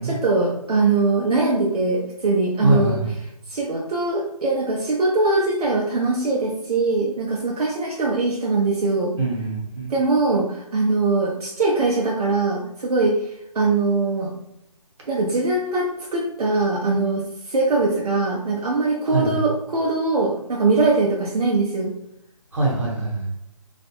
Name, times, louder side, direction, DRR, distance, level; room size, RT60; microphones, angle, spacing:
voice 1, 0.0-3.0 3.5-9.1 9.9-14.3 15.1-21.9, right 3 dB, 75° right, -3 dB, 0.5 m, -22 dB
voice 2, 2.6-3.1 9.2-9.9 19.0-19.4 22.5-23.3, right 2 dB, 50° right, -3 dB, 1.0 m, -23 dB
2.4 x 2.0 x 2.8 m, 0.79 s
hypercardioid pair, 175°, 20 cm